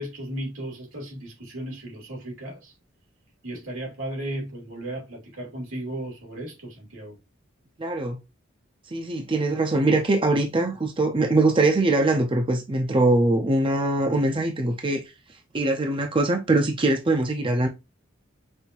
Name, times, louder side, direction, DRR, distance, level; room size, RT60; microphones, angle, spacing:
voice 1, 0.0-2.7 3.4-7.2, right 1 dB, 85° right, 2.5 m, -35 dB
voice 2, 7.8-8.2 8.9-15.0 15.5-17.7, right 2 dB, 25° right, 0.5 m, -22 dB
5.4 x 2.7 x 2.9 m
head